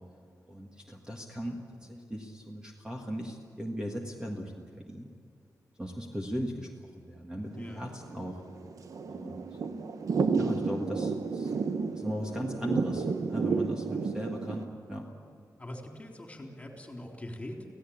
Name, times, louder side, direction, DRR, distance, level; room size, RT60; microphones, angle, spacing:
voice 1, 0.5-5.1 5.8-8.4 9.1-9.5 10.4-11.5 11.9-15.1, equal, 15° right, 0 dB, 1.8 m, -38 dB
Thunder / Rain, 7.6-14.7, right 4 dB, 60° right, 1.2 m, -31 dB
voice 2, 15.6-17.7, left 1 dB, 20° left, 1 dB, 3.6 m, -42 dB
26.0 x 17.0 x 8.7 m, 2.4 s
wide cardioid pair, 160°, 6 cm